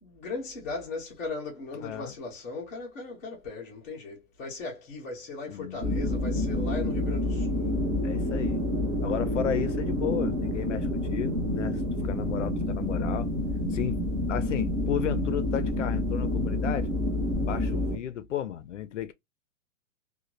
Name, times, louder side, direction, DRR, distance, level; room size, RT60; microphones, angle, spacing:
voice 1, 0.0-7.8, left 3 dB, 10° left, 0.5 m, -38 dB
voice 2, 1.7-2.2 5.5-6.2 8.0-8.6 9.0-13.3 13.7-14.0 14.3-16.9 17.4-19.1, left 10 dB, 60° left, 0.5 m, -34 dB
sound 1, 5.8-18.0, left 1 dB, 30° right, 1.1 m, -28 dB
3.0 x 2.2 x 2.4 m
hypercardioid pair, 175°, 41 cm